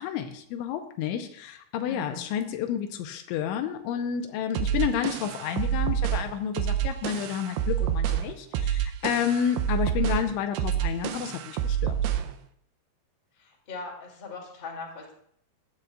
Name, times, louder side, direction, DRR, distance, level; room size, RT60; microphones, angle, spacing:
voice 1, 0.0-11.9, left 8 dB, 85° left, 6 dB, 3.2 m, -30 dB
voice 2, 1.8-2.2 13.4-15.1, left 3 dB, 30° left, -2 dB, 2.8 m, -40 dB
sound 1, 4.6-12.4, right 10 dB, 90° right, 2.2 m, -28 dB
15.5 x 10.5 x 2.4 m, 0.65 s
omnidirectional pair, 5.3 m